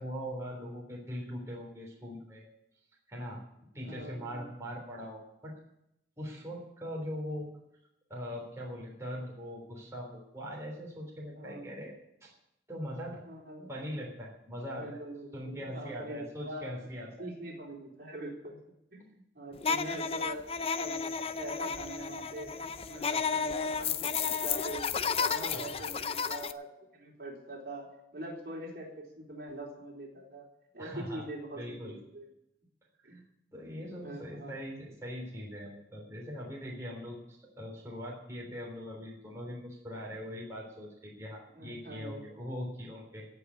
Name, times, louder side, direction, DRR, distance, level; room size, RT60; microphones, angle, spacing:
voice 1, 0.0-2.5 3.1-3.4 3.7-5.5 6.2-7.5 8.1-11.9 12.2-12.3 12.7-13.2 13.7-15.0 15.3-17.3 25.3-25.6 30.8-31.2 31.5-32.0 33.0-33.2 33.5-43.3, equal, 15° right, -3 dB, 3.5 m, -41 dB
voice 2, 3.8-4.5 11.3-11.7 13.2-13.7 14.8-16.7 17.2-18.6 18.9-20.4 20.8-21.1 21.4-22.5 22.8-24.9 25.2-26.7 26.9-27.8 28.1-30.4 30.7-32.3 33.0-33.2 33.9-34.6 41.6-42.2, right 1 dB, 55° right, -2 dB, 3.8 m, -43 dB
sound 1, 19.6-26.5, left 6 dB, 30° left, 0.5 m, -32 dB
17.5 x 5.8 x 9.7 m, 0.81 s
head